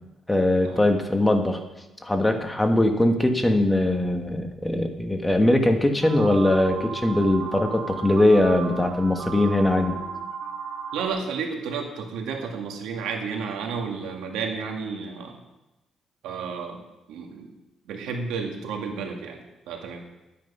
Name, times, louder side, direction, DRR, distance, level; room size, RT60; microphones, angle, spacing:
voice 1, 0.3-1.6 2.0-10.0, left 1 dB, 10° left, 5 dB, 1.5 m, -21 dB
sound 1, 6.0-11.1, right 6 dB, 55° right, 0.9 m, -35 dB
voice 2, 10.9-15.4 16.2-16.8 17.1-17.5 17.9-19.4 19.7-20.0, right 5 dB, 90° right, 3 dB, 1.9 m, -32 dB
12.0 x 9.4 x 5.5 m, 1.0 s
cardioid pair, 90°, 0 cm